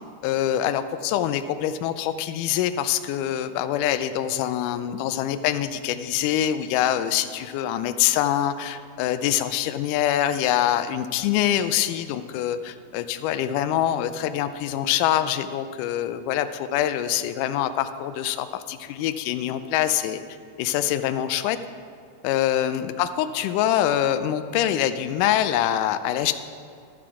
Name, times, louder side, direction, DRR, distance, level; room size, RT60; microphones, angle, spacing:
voice 1, 0.2-20.2 20.6-21.6 22.2-26.3, left 11 dB, 90° left, 10 dB, 1.8 m, -24 dB
12.0 x 7.5 x 4.9 m, 2.3 s
omnidirectional pair, 4.2 m